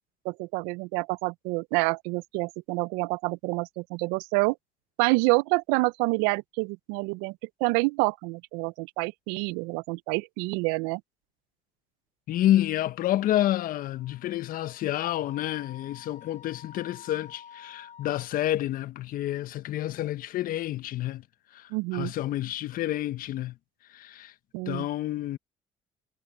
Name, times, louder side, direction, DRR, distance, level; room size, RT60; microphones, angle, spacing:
voice 1, 0.2-4.5 5.0-7.3 7.6-11.0 21.7-22.1 24.5-24.9, right 28 dB, 80° right, 0.6 m, -27 dB
voice 2, 12.3-21.2 21.5-23.6 23.9-24.3 24.7-25.4, left 13 dB, 65° left, 1.2 m, -29 dB
Wind instrument woodwind instrument, 14.0-18.3, left 8 dB, 50° left, 5.5 m, -49 dB
hypercardioid pair, 50°, 16 cm